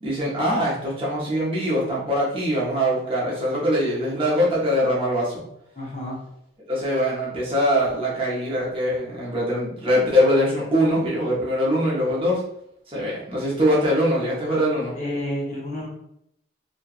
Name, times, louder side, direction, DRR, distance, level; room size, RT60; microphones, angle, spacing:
voice 1, 0.0-5.4 6.7-12.4 12.9-14.9, equal, 30° right, -6 dB, 0.7 m, -22 dB
voice 2, 5.8-6.2 14.9-15.9, left 1 dB, 40° left, -4 dB, 0.7 m, -30 dB
2.6 x 2.2 x 2.3 m, 0.76 s
head